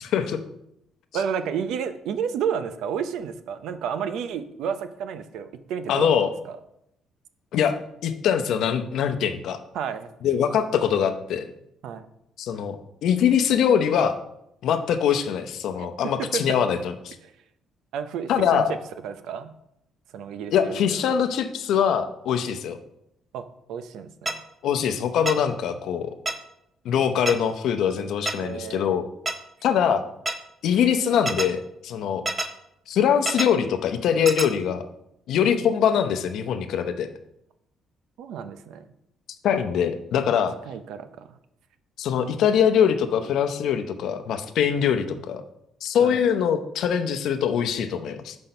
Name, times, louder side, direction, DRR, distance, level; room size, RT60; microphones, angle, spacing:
voice 1, 0.0-0.4 5.9-6.3 7.5-7.7 8.0-9.6 10.2-11.5 12.4-14.2 14.6-17.2 18.3-18.7 20.5-22.8 24.6-26.1 26.8-29.1 29.6-30.0 30.6-32.2 32.9-34.8 35.3-37.1 39.4-40.5 42.0-45.4 45.8-48.4, left 8 dB, 65° left, 8 dB, 0.7 m, -23 dB
voice 2, 1.1-6.1 6.5-6.6 9.7-10.1 11.8-12.1 15.8-15.9 16.3-16.4 17.9-18.6 19.0-19.5 20.1-20.8 23.3-23.4 23.7-24.4 28.4-29.0 38.2-38.8 40.7-41.3 46.0-46.2, right 7 dB, 75° right, 11 dB, 0.6 m, -31 dB
Synth ui interface click netural count down ten seconds, 24.3-24.4 25.3-25.4 26.3-26.4 27.3-27.4 28.3-28.4 29.3-29.4 30.3-30.4 31.3-31.5 32.3-32.5 33.3-33.5 34.3-34.5, right 2 dB, 20° right, 0.6 m, -26 dB
5.9 x 5.3 x 5.5 m, 0.79 s
cardioid pair, 150°, 0 cm